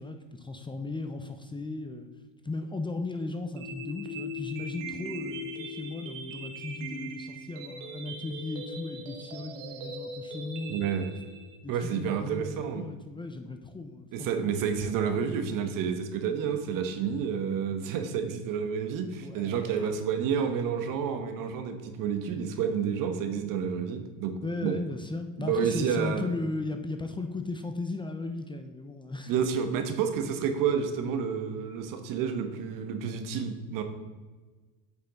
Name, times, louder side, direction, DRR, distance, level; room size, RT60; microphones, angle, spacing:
voice 1, 0.0-2.1 2.4-10.9 11.6-14.5 19.2-19.9 24.4-29.3, left 3 dB, 15° left, 7 dB, 0.7 m, -36 dB
sound 1, 3.6-11.6, right 1 dB, 80° right, 1.4 m, -40 dB
voice 2, 10.7-11.1 11.7-12.9 14.1-24.3 24.6-24.8 25.4-26.3 29.3-33.8, right 7 dB, 60° right, 7 dB, 1.3 m, -30 dB
8.7 x 5.7 x 3.9 m, 1.3 s
supercardioid pair, 90°, 38 cm